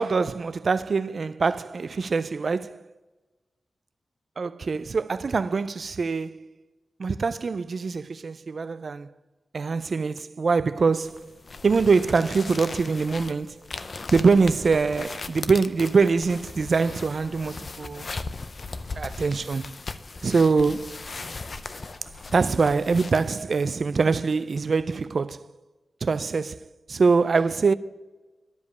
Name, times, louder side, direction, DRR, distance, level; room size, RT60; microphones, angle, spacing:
voice 1, 0.0-2.8 4.4-6.5 7.0-9.1 9.5-11.3 11.6-13.6 14.1-18.1 19.0-19.7 20.2-21.0 22.3-25.5 26.0-27.7, right 4 dB, 50° right, 0.3 m, -24 dB
sound 1, 11.0-23.3, left 3 dB, 40° left, 0.5 m, -38 dB
12.0 x 5.1 x 8.3 m
wide cardioid pair, 170°, 0 cm